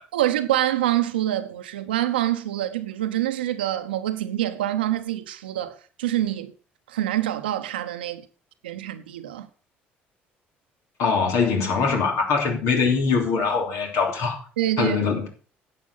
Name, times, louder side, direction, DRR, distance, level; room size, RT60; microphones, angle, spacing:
voice 1, 0.1-6.5 6.9-8.2 8.6-9.5 14.6-15.0, right 13 dB, 85° right, 0.9 m, -26 dB
voice 2, 11.0-14.4 14.8-15.3, left 5 dB, 65° left, 3.2 m, -22 dB
10.5 x 7.8 x 5.7 m
hypercardioid pair, 55°, 5 cm